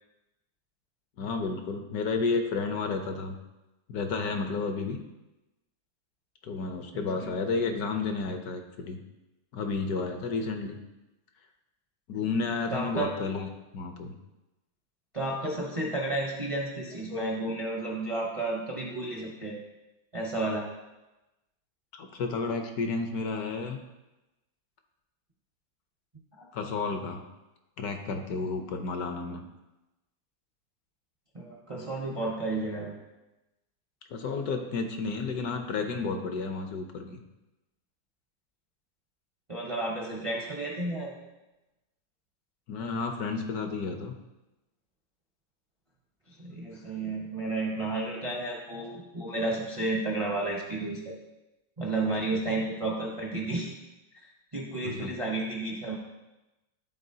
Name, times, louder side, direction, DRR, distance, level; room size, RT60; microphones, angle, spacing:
voice 1, 1.2-3.4 3.9-5.0 6.4-9.0 9.5-10.8 12.1-13.5 13.7-14.1 21.9-23.8 26.5-27.2 27.8-29.4 34.1-37.2 42.7-44.1 52.3-52.4 54.8-55.1, left 4 dB, 65° left, 5 dB, 1.1 m, -31 dB
voice 2, 6.9-7.3 12.7-13.1 15.1-19.6 20.1-20.7 26.4-26.5 31.3-32.9 39.5-41.1 46.3-51.1 51.8-53.7 54.1-54.3 54.5-56.0, right 2 dB, 35° right, -2 dB, 0.5 m, -32 dB
12.0 x 4.1 x 2.7 m, 1.0 s
omnidirectional pair, 2.0 m